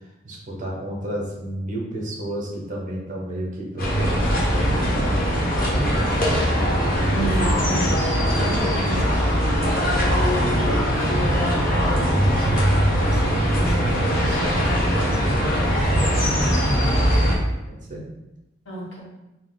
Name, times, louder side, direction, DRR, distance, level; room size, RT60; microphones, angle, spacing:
voice 1, 0.2-6.3 9.7-17.4 17.7-18.0, right 1 dB, 45° right, -2 dB, 0.9 m, -33 dB
sound 1, 3.8-17.4, equal, 50° left, 1.0 m, -21 dB
voice 2, 7.1-8.1 8.4-9.4 18.7-19.0, right 2 dB, 80° left, -3 dB, 1.1 m, -30 dB
4.1 x 2.1 x 3.7 m, 0.95 s
head